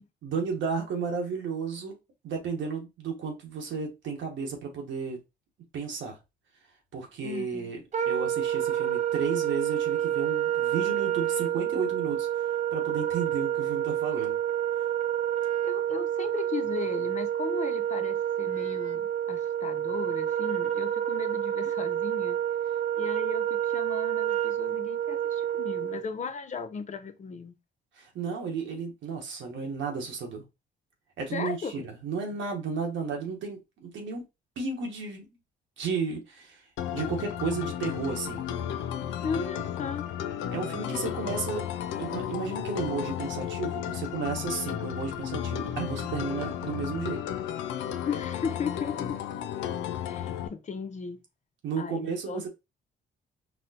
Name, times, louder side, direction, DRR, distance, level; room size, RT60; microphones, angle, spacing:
voice 1, 0.2-2.0 2.2-5.2 5.7-6.2 6.9-12.3 12.7-14.4 14.8-14.9 28.0-30.4 31.2-34.2 34.6-35.3 35.8-36.6 36.9-38.4 40.5-41.7 42.0-47.2 51.6-52.5, right 5 dB, 75° right, 1.1 m, -33 dB
voice 2, 7.2-7.7 15.6-22.4 22.9-27.5 31.3-31.8 39.2-40.0 48.0-49.2 50.0-51.2 51.8-52.5, left 5 dB, 40° left, 0.6 m, -36 dB
Wind instrument woodwind instrument, 7.9-26.0, right 11 dB, 35° right, 0.5 m, -28 dB
sound 1, 36.8-50.5, left 10 dB, 90° left, 0.4 m, -33 dB
4.2 x 2.1 x 2.7 m
cardioid pair, 90°, 20 cm